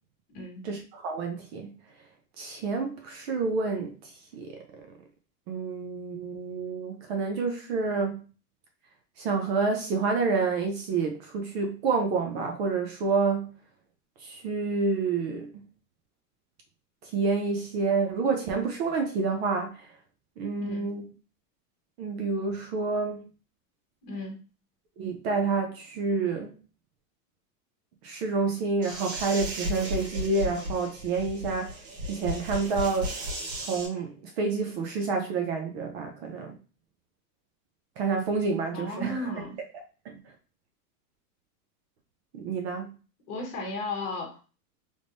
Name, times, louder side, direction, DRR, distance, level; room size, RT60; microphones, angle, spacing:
voice 1, 0.6-1.7 2.4-3.9 4.3-4.9 5.5-8.2 9.2-13.5 14.2-15.5 17.0-19.9 20.4-21.0 22.0-23.2 25.0-26.5 28.0-31.8 32.1-33.2 33.5-36.5 38.0-39.4 40.0-40.2 42.3-42.9, right 4 dB, 40° right, 0.6 m, -28 dB
voice 2, 20.6-20.9 24.0-24.4 38.7-39.6 43.3-44.4, left 2 dB, 30° left, 1.2 m, -35 dB
sound 1, 28.8-33.9, left 1 dB, 80° right, 1.7 m, -35 dB
3.4 x 3.3 x 2.6 m
supercardioid pair, 165°, 47 cm